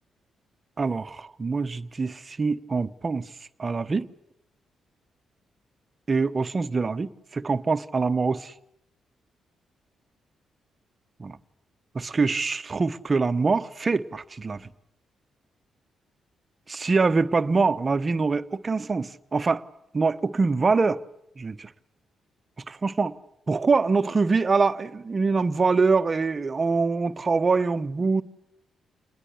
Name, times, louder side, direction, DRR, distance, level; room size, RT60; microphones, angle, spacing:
voice 1, 0.8-3.3 3.6-4.1 6.1-8.5 11.2-11.4 11.9-14.7 16.7-19.6 19.9-21.0 21.4-21.7 22.7-23.1 23.5-28.2, right 4 dB, 40° right, 1.1 m, -24 dB
27.5 x 20.5 x 8.4 m
supercardioid pair, 55°, 0 cm